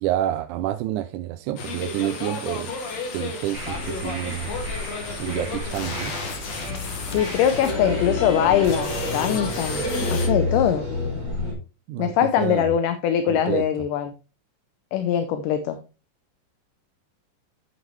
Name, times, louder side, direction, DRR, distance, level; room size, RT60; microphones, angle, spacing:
voice 1, 0.0-2.7 3.1-4.5 5.2-6.1 11.9-12.1 12.4-12.7 13.3-13.7, right 13 dB, 80° right, 1.8 m, -28 dB
sound 1, 1.6-10.3, left 5 dB, 60° left, 2.6 m, -32 dB
sound 2, 3.5-11.5, left 1 dB, 25° right, 4.5 m, -30 dB
voice 2, 7.1-9.8 10.1-10.9 12.0-14.1 14.9-15.8, left 9 dB, 75° left, 2.2 m, -22 dB
8.9 x 8.5 x 3.1 m
omnidirectional pair, 3.8 m